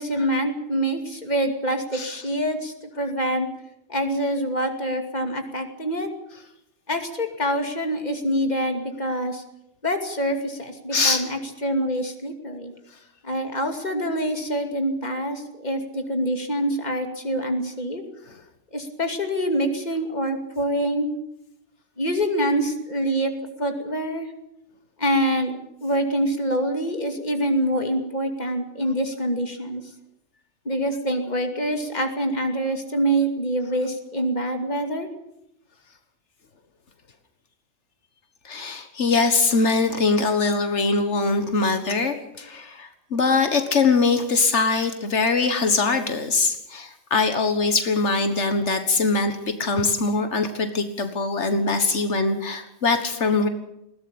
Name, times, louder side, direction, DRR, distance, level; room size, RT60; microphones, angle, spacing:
voice 1, 0.0-3.5 3.9-6.1 6.9-9.4 9.8-12.7 13.2-18.0 18.7-21.1 22.0-24.3 25.0-25.5 25.8-29.8 30.6-35.1, equal, 40° left, 5 dB, 2.7 m, -25 dB
voice 2, 10.9-11.2 38.4-53.5, left 3 dB, 80° left, 8 dB, 1.8 m, -22 dB
20.5 x 16.5 x 8.7 m, 0.81 s
omnidirectional pair, 1.2 m